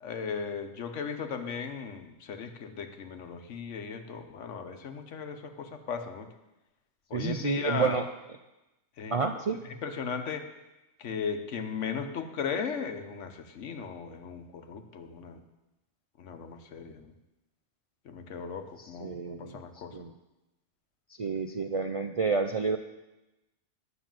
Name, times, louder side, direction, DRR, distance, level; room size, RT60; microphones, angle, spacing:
voice 1, 0.0-6.3 7.1-8.0 9.0-9.3 9.6-10.5 11.0-15.4 16.2-17.1 18.1-20.1, left 6 dB, 90° left, 7 dB, 1.2 m, -37 dB
voice 2, 7.1-8.1 9.1-9.6 18.8-19.5 19.9-20.1 21.2-22.8, right 5 dB, 60° right, 6 dB, 0.3 m, -29 dB
9.5 x 6.3 x 7.5 m, 1.0 s
omnidirectional pair, 1.2 m